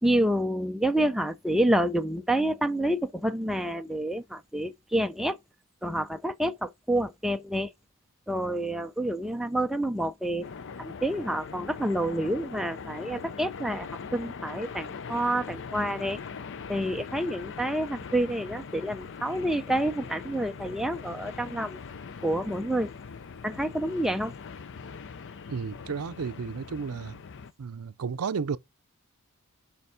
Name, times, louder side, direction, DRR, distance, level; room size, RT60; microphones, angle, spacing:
voice 1, 0.0-5.4 5.8-7.7 8.3-10.5 10.8-16.2 16.7-21.8 22.2-22.9 23.4-24.3, right 1 dB, ahead, 0.5 m, -28 dB
sound 1, 10.4-27.5, left 5 dB, 55° left, 0.5 m, -41 dB
voice 2, 25.5-27.2 27.6-28.6, right 6 dB, 75° right, 0.5 m, -33 dB
6.8 x 5.6 x 4.9 m
head